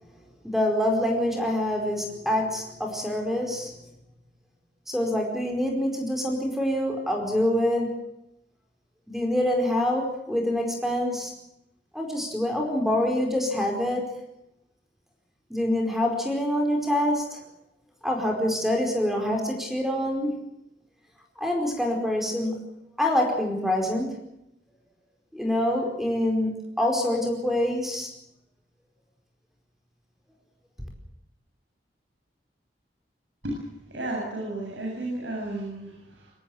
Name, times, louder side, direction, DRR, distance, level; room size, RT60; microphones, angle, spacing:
voice 1, 0.4-3.7 4.9-8.0 9.1-11.3 11.9-14.2 15.5-17.4 18.0-20.4 21.4-22.6 23.0-24.2 25.3-28.1, left 1 dB, ahead, 2 dB, 4.8 m, -26 dB
voice 2, 33.9-36.3, right 1 dB, 80° right, -2 dB, 7.8 m, -33 dB
24.5 x 18.0 x 7.8 m, 0.84 s
head